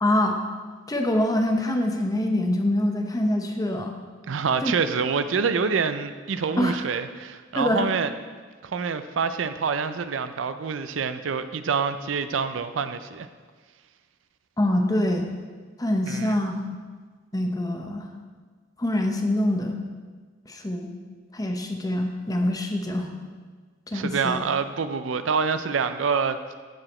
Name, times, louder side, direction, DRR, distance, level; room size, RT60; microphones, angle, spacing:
voice 1, 0.0-0.4 0.9-3.9 4.6-4.7 6.6-6.8 7.6-7.9 14.6-15.3 15.8-16.5 17.3-18.1 18.8-19.8 20.5-20.9 21.3-23.1 23.9-24.4, left 1 dB, 20° left, 4 dB, 0.8 m, -24 dB
voice 2, 4.3-8.1 8.6-13.3 16.1-16.4 23.9-26.4, right 5 dB, 75° right, 11 dB, 0.5 m, -26 dB
14.0 x 4.9 x 4.3 m, 1.5 s
head